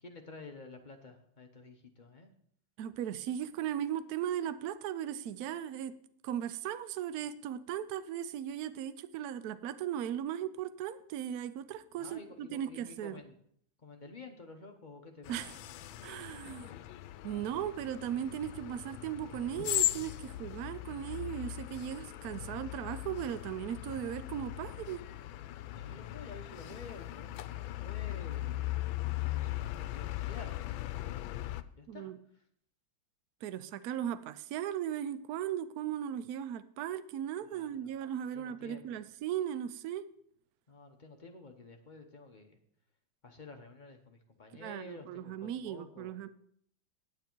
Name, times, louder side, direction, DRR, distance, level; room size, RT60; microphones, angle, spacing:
voice 1, 0.0-2.3 12.0-13.3 13.8-15.6 25.7-30.5 30.8-32.1 37.4-37.9 38.3-39.0 40.7-42.6 43.2-46.2, left 3 dB, 40° left, 4 dB, 0.6 m, -51 dB
voice 2, 2.8-5.9 6.2-13.2 15.3-15.5 16.0-16.7 17.2-25.0 31.9-32.2 33.4-40.0 44.5-46.3, right 10 dB, 70° right, 14 dB, 0.9 m, -37 dB
sound 1, 15.2-31.6, left 14 dB, 85° left, 1.3 m, -38 dB
9.4 x 9.4 x 4.5 m, 0.66 s
omnidirectional pair, 2.1 m